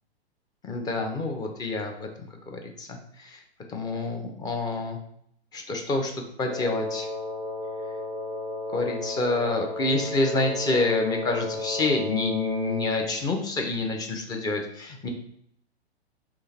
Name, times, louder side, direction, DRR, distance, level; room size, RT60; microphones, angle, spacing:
voice 1, 0.6-2.1 2.5-3.4 3.7-5.0 5.5-6.1 6.4-7.1 8.7-15.1, left 2 dB, 10° left, 3 dB, 0.6 m, -27 dB
Wind instrument woodwind instrument, 6.5-13.2, left 2 dB, 75° left, 1.4 m, -33 dB
3.7 x 3.2 x 4.2 m, 0.71 s
figure-of-eight pair, 110°, 32 cm